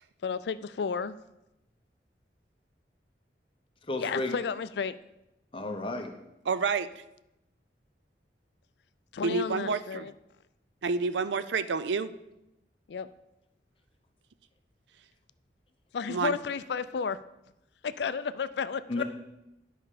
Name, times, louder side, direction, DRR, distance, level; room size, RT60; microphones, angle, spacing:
voice 1, 0.2-1.2 4.0-5.0 9.1-10.1 12.9-13.1 15.9-17.2 17.8-19.0, left 6 dB, 70° left, 14 dB, 0.4 m, -32 dB
voice 2, 3.9-4.4 5.5-6.1 18.9-19.0, left 2 dB, 30° left, 4 dB, 1.0 m, -32 dB
voice 3, 6.5-6.9 9.2-10.1 10.8-12.1 16.1-16.4, right 4 dB, 85° right, 14 dB, 0.5 m, -29 dB
11.0 x 5.5 x 5.0 m, 0.90 s
head